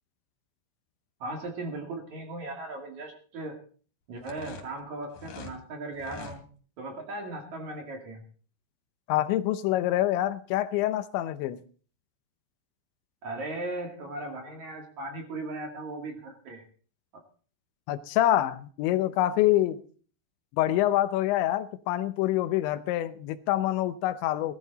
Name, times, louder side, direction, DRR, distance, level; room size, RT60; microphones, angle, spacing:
voice 1, 1.2-3.6 4.1-6.4 6.8-8.2 13.2-16.6, right 2 dB, 45° right, 3.0 m, -37 dB
sound 1, 4.2-5.6 5.9-6.4, left 4 dB, 50° left, 4.0 m, -43 dB
voice 2, 9.1-11.6 17.9-19.8 20.6-24.6, left 14 dB, 80° left, 3.1 m, -26 dB
17.5 x 13.0 x 4.0 m
omnidirectional pair, 5.3 m